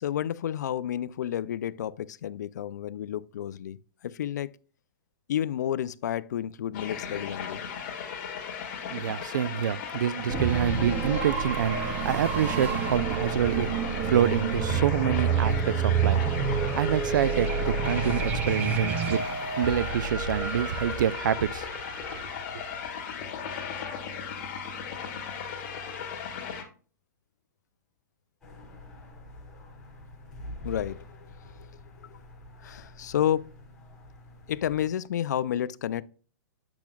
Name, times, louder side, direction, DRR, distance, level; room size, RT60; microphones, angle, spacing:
voice 1, 0.0-4.5 5.3-7.6 15.8-16.0 30.6-31.0 32.1-32.2 32.6-33.4 34.5-36.0, left 10 dB, 65° left, 0.4 m, -30 dB
sound 1, 6.7-26.6, left 7 dB, 35° left, 1.8 m, -37 dB
voice 2, 8.9-13.7 14.1-16.2 16.8-19.2 19.6-21.7, right 9 dB, 75° right, 0.4 m, -27 dB
sound 2, 10.3-23.0, right 6 dB, 15° right, 0.5 m, -29 dB
sound 3, 28.4-34.9, left 1 dB, 5° left, 2.3 m, -46 dB
8.8 x 5.9 x 2.3 m
hypercardioid pair, 165°, 10 cm